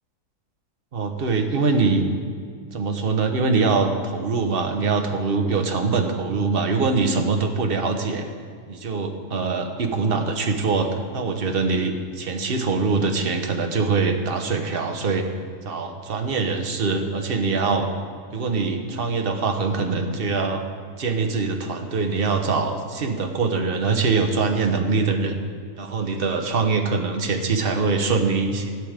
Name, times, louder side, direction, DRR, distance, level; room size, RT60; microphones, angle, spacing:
voice 1, 0.9-2.0 2.7-8.3 8.7-15.3 15.6-17.9 18.3-20.6 21.0-25.4 25.8-28.7, right 4 dB, 40° right, 4 dB, 1.1 m, -23 dB
13.0 x 11.0 x 5.1 m, 2.1 s
omnidirectional pair, 1.6 m